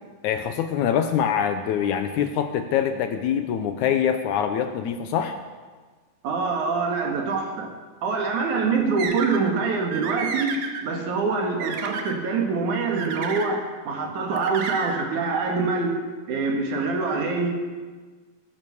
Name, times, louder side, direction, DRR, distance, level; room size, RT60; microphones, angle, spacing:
voice 1, 0.2-5.4, left 8 dB, 75° left, 8 dB, 2.0 m, -24 dB
voice 2, 6.2-7.7 8.0-10.6 10.8-15.9 16.3-17.5, right 4 dB, 65° right, 2 dB, 3.1 m, -25 dB
sound 1, 9.0-9.5 9.9-10.8 11.3-12.2 13.0-13.5 14.3-15.1, right 6 dB, 90° right, 3.2 m, -32 dB
18.0 x 9.7 x 7.0 m, 1.4 s
omnidirectional pair, 3.9 m